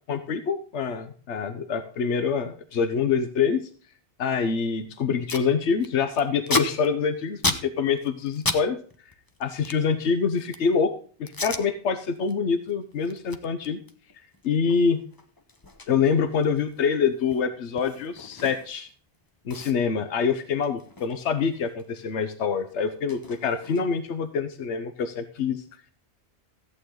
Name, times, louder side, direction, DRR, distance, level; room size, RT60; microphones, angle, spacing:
voice 1, 0.1-3.6 4.2-8.8 9.4-10.9 11.2-13.8 14.4-15.0 15.9-18.9 19.5-25.6, left 6 dB, 80° left, 10 dB, 1.2 m, -25 dB
Packing tape duct tape, 4.7-4.8 5.0-5.5 5.8-8.6 8.9-10.7 11.3-11.6 12.1-12.3 12.7-18.9 19.1-19.2 19.5-21.9 22.1-24.1, left 2 dB, 20° left, 0.8 m, -34 dB
14.5 x 8.7 x 3.8 m, 0.41 s
omnidirectional pair, 1.2 m